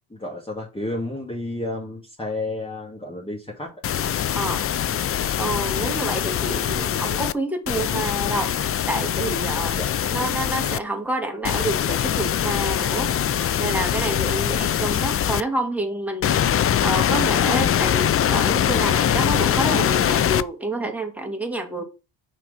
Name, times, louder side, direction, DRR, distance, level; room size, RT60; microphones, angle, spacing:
voice 1, 0.1-3.7 9.7-9.9 14.5-15.0, left 2 dB, 15° left, 2.2 m, -31 dB
sound 1, 3.8-7.3 7.7-10.8 11.4-15.4 16.2-20.4, left 10 dB, 35° left, 0.4 m, -22 dB
voice 2, 5.4-8.5 8.9-9.8 10.1-13.1 13.6-16.4 16.8-21.8, right 1 dB, 5° right, 1.8 m, -28 dB
6.1 x 4.6 x 5.5 m
cardioid pair, 125°, 39 cm